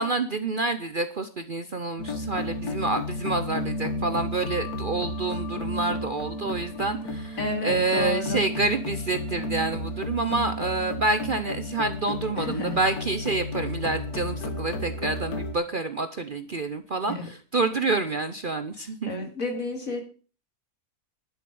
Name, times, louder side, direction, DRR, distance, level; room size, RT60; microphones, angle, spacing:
voice 1, 0.0-19.1, right 3 dB, 45° right, 10 dB, 0.8 m, -28 dB
sound 1, 2.0-15.5, left 1 dB, 85° left, 1.9 m, -32 dB
voice 2, 7.4-8.5 12.4-12.8 17.1-17.3 18.8-20.0, left 2 dB, 65° left, 4 dB, 3.0 m, -31 dB
11.0 x 7.3 x 7.0 m, 0.38 s
omnidirectional pair, 1.6 m